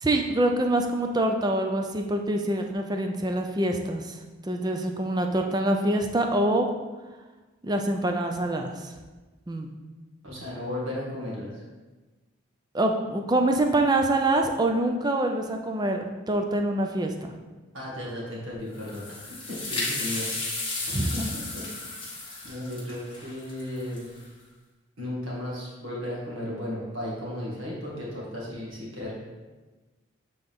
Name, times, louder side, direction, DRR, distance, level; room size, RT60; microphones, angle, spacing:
voice 1, 0.0-4.2 4.5-6.7 7.6-8.9 9.5-9.7 12.7-17.3 20.9-21.3, right 1 dB, 20° right, 4 dB, 0.5 m, -25 dB
voice 2, 10.2-11.6 17.7-21.9 22.4-24.1 25.0-29.1, left 1 dB, 90° right, -5 dB, 1.9 m, -35 dB
sound 1, 18.7-24.2, left 2 dB, 25° left, 1.5 m, -34 dB
7.9 x 3.9 x 3.6 m, 1.2 s
head